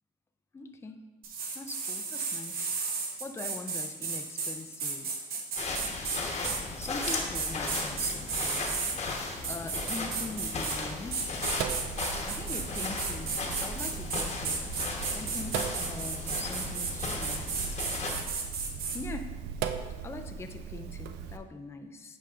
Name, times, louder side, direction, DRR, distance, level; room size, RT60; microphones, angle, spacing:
voice 1, 0.5-1.0 1.5-5.3 6.8-8.9 9.5-11.6 12.2-17.8 18.9-19.3 20.0-22.2, left 3 dB, 15° left, 6 dB, 0.4 m, -42 dB
sound 1, 1.2-9.0 9.4-10.8 11.1-19.0, right 4 dB, 60° right, 0.9 m, -34 dB
sound 2, 5.6-18.2, left 3 dB, 40° left, 1.0 m, -36 dB
Sink (filling or washing), 11.4-21.4, right 7 dB, 85° right, 0.4 m, -39 dB
8.5 x 4.9 x 2.4 m, 1.2 s
cardioid pair, 110°, 17 cm